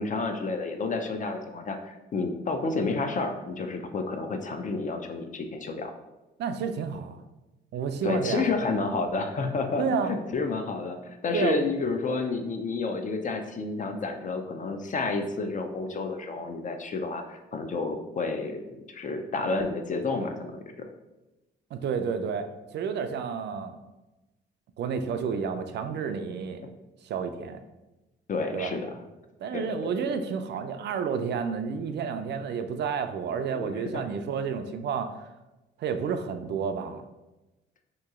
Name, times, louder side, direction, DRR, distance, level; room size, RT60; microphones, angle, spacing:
voice 1, 0.0-5.9 8.0-20.5 28.3-29.0 29.5-30.2 33.5-34.0, left 3 dB, 40° left, 6 dB, 0.5 m, -30 dB
voice 2, 6.4-7.2 7.7-8.5 9.8-10.1 11.3-11.6 21.7-23.8 24.8-26.6 27.0-27.6 28.5-28.7 29.4-35.3 35.8-37.0, right 6 dB, 60° right, 7 dB, 0.4 m, -30 dB
2.9 x 2.7 x 3.6 m, 1.0 s
cardioid pair, 90°, 20 cm